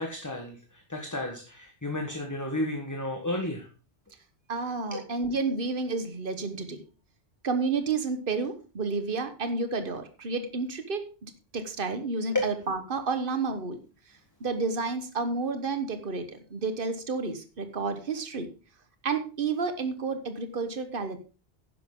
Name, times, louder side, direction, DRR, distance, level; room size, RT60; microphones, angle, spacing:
voice 1, 0.0-3.7 4.9-5.1 12.3-12.6, left 1 dB, 15° left, 3 dB, 1.4 m, -32 dB
voice 2, 4.5-6.8 7.4-13.8 14.4-18.5 19.0-21.2, right 4 dB, 55° right, 9 dB, 1.6 m, -30 dB
11.5 x 10.0 x 3.8 m, 0.35 s
omnidirectional pair, 1.1 m